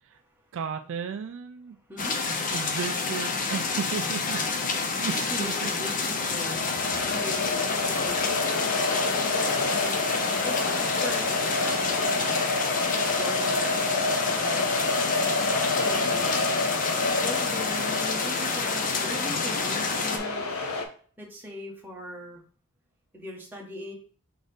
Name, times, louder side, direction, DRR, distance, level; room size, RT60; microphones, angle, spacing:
voice 1, 0.5-1.8 2.3-4.4 4.7-5.7, right 6 dB, 60° right, 7 dB, 0.3 m, -34 dB
voice 2, 1.9-2.2 5.0-10.0 10.4-12.4 13.1-13.8 14.3-14.8 15.7-16.4 17.0-20.7 21.2-22.4 23.1-23.9, equal, 10° right, -2 dB, 1.2 m, -40 dB
sound 1, 2.0-20.2, left 4 dB, 35° left, 0.6 m, -29 dB
sound 2, 6.2-20.8, left 3 dB, 70° left, 0.8 m, -29 dB
3.9 x 3.8 x 3.5 m, 0.43 s
head